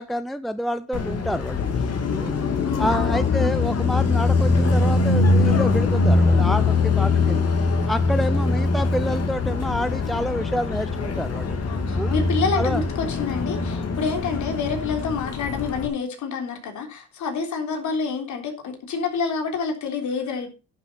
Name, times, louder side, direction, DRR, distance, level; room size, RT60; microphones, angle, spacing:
voice 1, 0.0-1.7 2.1-2.4 2.8-7.5 7.9-11.6 12.0-12.2 12.6-12.8, equal, ahead, 12 dB, 0.6 m, -28 dB
Car passing by, 0.9-15.9, left 3 dB, 55° left, 3.0 m, -22 dB
voice 2, 2.6-3.3 6.6-6.8 11.6-20.5, left 5 dB, 75° left, 3 dB, 3.6 m, -28 dB
11.0 x 7.0 x 5.6 m, 0.31 s
cardioid pair, 90°, 30 cm